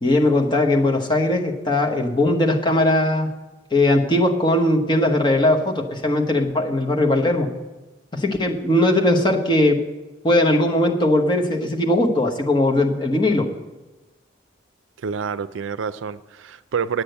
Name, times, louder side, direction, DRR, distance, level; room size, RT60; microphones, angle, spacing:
voice 1, 0.0-3.3 3.7-7.5 8.1-9.8 10.2-13.5, left 1 dB, 25° left, 1 dB, 1.1 m, -19 dB
voice 2, 15.0-17.0, right 6 dB, 85° right, 15 dB, 0.4 m, -27 dB
9.2 x 8.5 x 7.9 m, 1.1 s
head